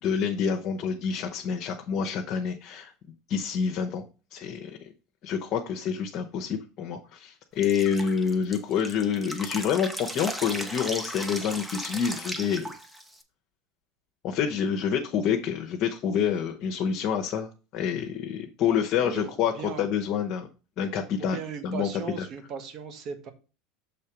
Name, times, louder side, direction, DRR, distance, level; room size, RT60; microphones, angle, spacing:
voice 1, 0.0-2.9 3.3-4.0 4.3-4.9 5.2-12.7 14.2-20.5 20.8-21.4 21.6-21.9 22.2-22.3, left 7 dB, 50° left, 3 dB, 0.9 m, -27 dB
Drip, 7.6-13.2, equal, 5° right, 1.0 m, -36 dB
voice 2, 19.0-19.8 21.2-23.3, right 6 dB, 50° right, 7 dB, 1.4 m, -37 dB
6.4 x 3.7 x 5.9 m, 0.34 s
supercardioid pair, 110°, 0 cm